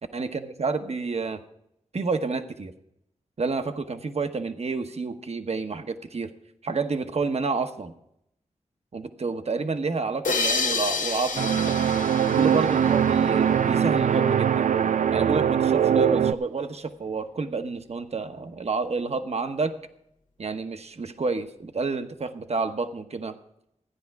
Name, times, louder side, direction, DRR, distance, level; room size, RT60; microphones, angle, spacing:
voice 1, 0.1-1.4 1.9-2.7 3.4-6.3 6.6-7.9 8.9-11.8 12.3-14.7 15.1-19.7 20.4-23.4, right 4 dB, 55° right, 8 dB, 1.0 m, -29 dB
sound 1, 10.2-13.6, left 4 dB, 90° left, 0.9 m, -29 dB
sound 2, 11.4-16.3, right 8 dB, 75° right, 0.4 m, -22 dB
14.0 x 9.9 x 4.7 m, 0.76 s
wide cardioid pair, 65°, 13 cm